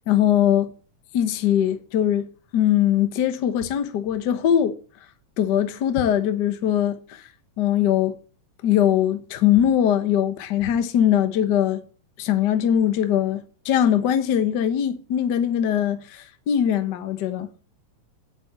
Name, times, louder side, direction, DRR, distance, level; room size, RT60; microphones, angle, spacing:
voice 1, 0.1-0.7 1.1-2.3 2.5-4.7 5.4-7.2 7.6-8.1 8.6-11.8 12.2-17.5, left 10 dB, 80° left, 0.9 m, -21 dB
9.8 x 6.0 x 8.2 m
omnidirectional pair, 3.6 m